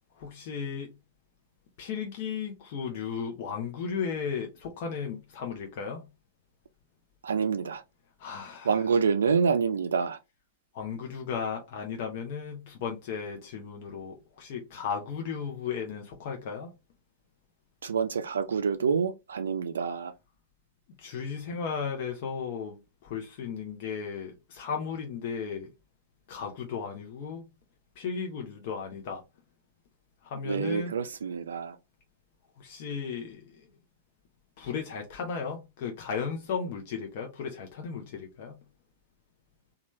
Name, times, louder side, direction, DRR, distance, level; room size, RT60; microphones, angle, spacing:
voice 1, 0.2-0.9 1.8-6.1 8.2-8.9 10.7-16.7 21.0-25.7 26.3-27.4 28.0-29.2 30.2-30.9 32.6-33.7 34.6-38.6, left 6 dB, 55° left, 0.6 m, -35 dB
voice 2, 7.2-7.8 8.6-10.2 17.8-20.1 30.4-31.8, right 6 dB, 75° right, 0.3 m, -27 dB
3.1 x 2.3 x 3.0 m
figure-of-eight pair, 100°, 0 cm